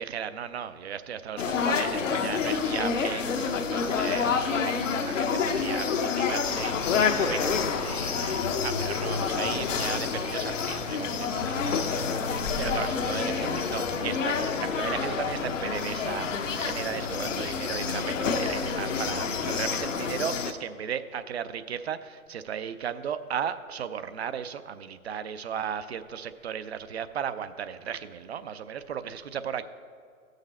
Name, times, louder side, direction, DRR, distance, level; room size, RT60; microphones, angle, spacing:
voice 1, 0.0-7.6 7.8-29.6, right 8 dB, 50° right, 12 dB, 0.5 m, -36 dB
sound 1, 1.4-20.5, left 5 dB, 60° left, 0.8 m, -28 dB
sound 2, 6.5-19.8, left 3 dB, 25° left, 0.5 m, -38 dB
15.0 x 6.6 x 4.2 m, 2.2 s
figure-of-eight pair, 125°, 43 cm